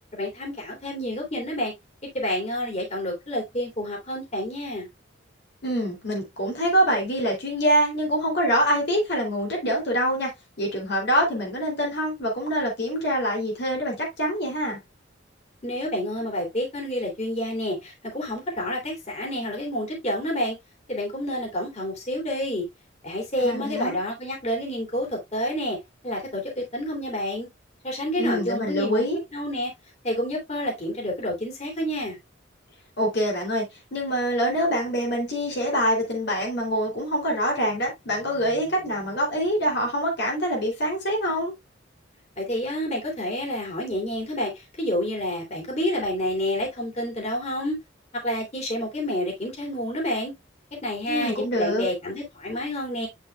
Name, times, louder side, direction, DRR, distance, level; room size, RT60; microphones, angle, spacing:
voice 1, 0.1-1.7 2.1-4.9 15.6-20.5 20.9-22.6 23.0-25.8 26.0-27.5 27.8-29.0 29.3-29.7 30.0-32.2 42.4-47.8 48.2-50.3 50.8-53.1, left 1 dB, 35° left, 3.2 m, -29 dB
voice 2, 5.6-10.3 10.6-14.8 23.4-24.0 28.2-29.2 33.0-41.5 51.1-51.9, equal, 60° left, 3.0 m, -25 dB
8.3 x 6.5 x 2.3 m
head